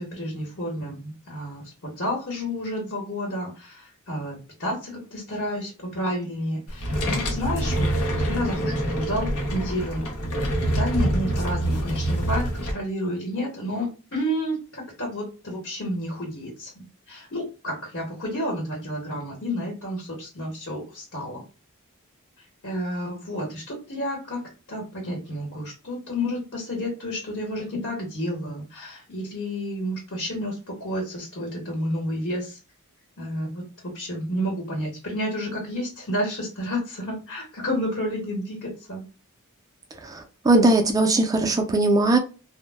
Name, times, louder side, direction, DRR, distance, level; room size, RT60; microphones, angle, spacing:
voice 1, 0.0-7.9 8.2-10.1 10.3-21.4 22.6-24.4 24.7-32.6 33.2-39.0, equal, 60° left, 1.0 m, -30 dB
sound 1, 6.7-12.7, right 1 dB, 85° left, 0.7 m, -26 dB
voice 2, 40.5-42.2, right 2 dB, 15° right, 0.3 m, -19 dB
2.1 x 2.0 x 3.2 m
head